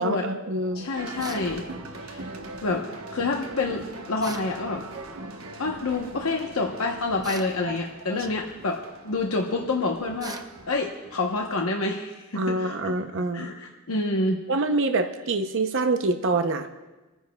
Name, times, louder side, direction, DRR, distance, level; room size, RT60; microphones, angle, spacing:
voice 1, 0.0-0.9 7.7-7.8 8.1-8.3 12.4-13.5 14.5-16.7, right 2 dB, 65° right, 6 dB, 0.7 m, -26 dB
sound 1, 0.6-10.9, left 1 dB, 45° right, 3.6 m, -50 dB
voice 2, 0.7-1.7 2.0-2.2 2.6-2.9 3.1-4.8 5.6-8.8 9.0-10.4 10.7-13.0 13.3-14.4, left 3 dB, 90° left, 1 dB, 0.9 m, -28 dB
sound 2, 1.0-11.6, right 2 dB, 85° right, 1.1 m, -41 dB
sound 3, 1.2-1.5 4.2-4.5 7.2-7.6 10.2-10.5, right 4 dB, 20° right, 0.6 m, -39 dB
24.5 x 10.0 x 2.3 m, 1.2 s
head